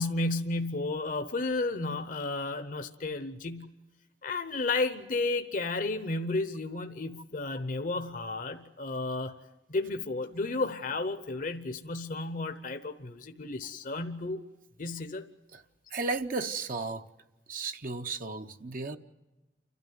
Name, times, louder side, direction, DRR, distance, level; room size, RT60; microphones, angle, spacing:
voice 1, 0.0-3.7 4.2-9.3 9.7-14.4 14.8-15.2, left 2 dB, 50° left, 0.9 m, -32 dB
voice 2, 15.9-17.1 17.5-19.0, right 3 dB, 50° right, 0.8 m, -34 dB
29.5 x 12.5 x 9.3 m
head